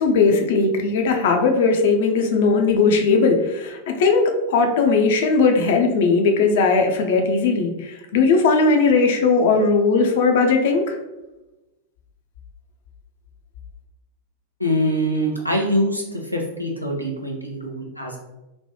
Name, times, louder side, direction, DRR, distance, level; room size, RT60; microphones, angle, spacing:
voice 1, 0.0-11.0, left 4 dB, 55° left, 4 dB, 0.5 m, -18 dB
voice 2, 14.6-16.0 16.3-18.2, equal, 90° right, 0 dB, 0.6 m, -23 dB
3.2 x 2.2 x 2.7 m, 1.0 s
figure-of-eight pair, 90°, 0 cm